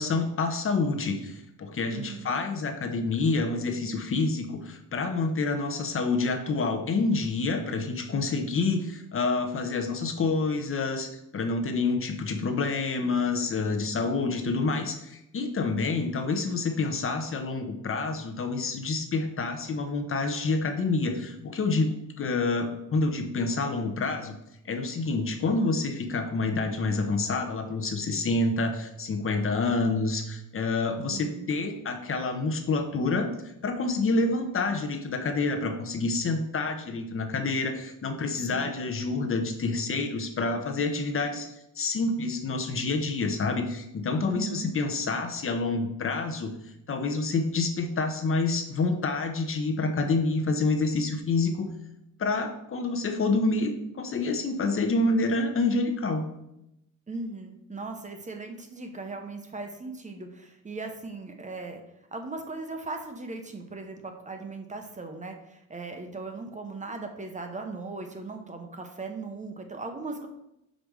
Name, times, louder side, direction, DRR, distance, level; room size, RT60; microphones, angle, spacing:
voice 1, 0.0-11.1 11.3-24.4 24.6-33.3 33.6-41.5 41.8-46.5 46.9-51.7 52.2-56.3, left 3 dB, 40° left, 5 dB, 0.9 m, -28 dB
voice 2, 1.9-2.4 31.1-31.5 38.5-38.7 44.2-44.7 57.1-61.8 62.1-70.3, right 3 dB, 20° right, 4 dB, 0.9 m, -38 dB
5.2 x 5.1 x 6.2 m, 0.83 s
cardioid pair, 140°, 32 cm